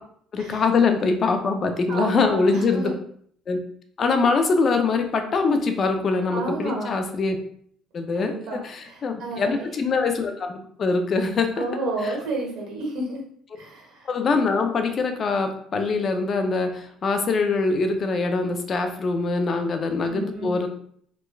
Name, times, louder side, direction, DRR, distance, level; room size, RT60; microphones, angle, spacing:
voice 1, 0.3-2.9 3.5-3.6 4.0-7.4 7.9-11.6 12.0-12.1 14.1-20.7, left 4 dB, 40° left, 6 dB, 0.3 m, -23 dB
voice 2, 1.9-2.9 6.3-6.9 8.1-9.7 11.6-13.2 13.6-14.1 20.0-20.6, right 2 dB, 80° right, -2 dB, 1.1 m, -31 dB
3.0 x 2.2 x 2.2 m, 0.62 s
cardioid pair, 120°, 0 cm